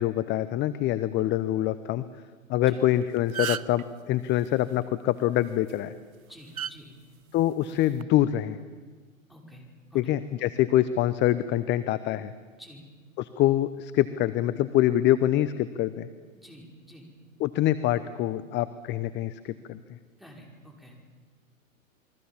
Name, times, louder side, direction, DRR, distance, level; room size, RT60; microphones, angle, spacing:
voice 1, 0.0-2.0 2.5-5.9 7.3-8.6 9.9-12.3 13.2-16.1 17.4-19.8, left 13 dB, 25° left, 14 dB, 0.9 m, -25 dB
sound 1, 2.8-2.9 3.2-3.8 5.5-5.7 6.6-6.7 7.8-8.0, right 9 dB, 90° right, 0.8 m, -32 dB
voice 2, 6.3-6.9 9.3-9.6 9.9-10.1 12.6-12.9 16.3-17.1 20.2-21.0, equal, ahead, 0 dB, 5.5 m, -49 dB
28.5 x 22.0 x 7.4 m, 1.4 s
hypercardioid pair, 110°, 41 cm